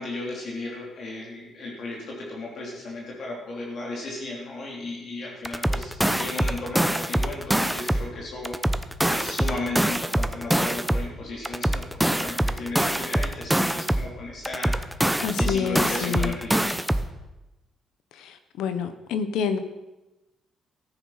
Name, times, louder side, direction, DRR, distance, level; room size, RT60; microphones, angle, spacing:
voice 1, 0.0-8.6 9.1-14.7 15.1-16.8, left 2 dB, 60° left, -3 dB, 3.3 m, -35 dB
sound 1, 5.4-8.1 8.4-11.1 11.4-14.1 14.4-17.1, right 1 dB, 5° right, 0.8 m, -24 dB
voice 2, 15.2-16.3 18.6-19.6, left 7 dB, 85° left, 10 dB, 1.1 m, -27 dB
14.0 x 9.3 x 5.8 m, 1.0 s
cardioid pair, 90°, 0 cm